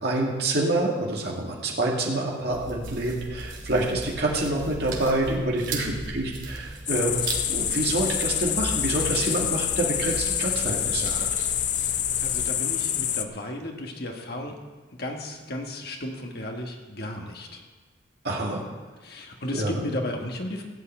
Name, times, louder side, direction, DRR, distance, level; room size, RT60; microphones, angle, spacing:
voice 1, 0.0-11.2 18.2-18.6 19.5-19.7, right 2 dB, 55° right, -2 dB, 2.1 m, -27 dB
sound 1, 2.5-12.4, right 2 dB, 75° right, 2.4 m, -37 dB
sound 2, 6.9-13.2, left 10 dB, 40° left, 0.5 m, -27 dB
voice 2, 12.2-14.6 15.0-17.6 19.0-20.6, left 1 dB, 55° left, 1 dB, 1.8 m, -34 dB
15.5 x 5.9 x 8.8 m, 1.3 s
head